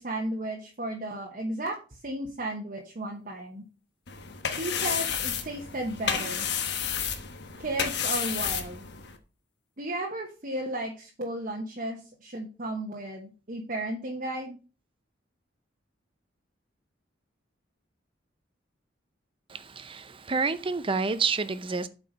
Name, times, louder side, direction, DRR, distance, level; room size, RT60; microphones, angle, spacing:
voice 1, 0.0-1.8 2.0-3.6 4.5-6.5 7.6-8.8 9.8-14.6, right 1 dB, 45° right, 1.1 m, -34 dB
sound 1, 4.1-9.2, left 7 dB, 60° left, 1.1 m, -31 dB
voice 2, 19.5-21.9, right 4 dB, 30° right, 0.6 m, -29 dB
8.0 x 4.8 x 5.2 m
head